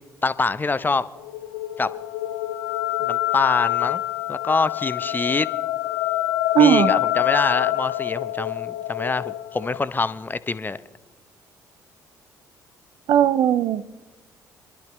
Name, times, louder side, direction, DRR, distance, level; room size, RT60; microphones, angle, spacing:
voice 1, 0.2-1.1 1.8-1.9 3.0-4.0 4.3-5.5 6.6-10.8, left 3 dB, 20° left, 0.7 m, -25 dB
sound 1, 1.2-9.8, left 15 dB, 75° left, 0.5 m, -26 dB
voice 2, 6.5-6.9 13.1-14.0, right 10 dB, 55° right, 0.6 m, -18 dB
25.5 x 11.5 x 3.2 m
figure-of-eight pair, 50°, 9 cm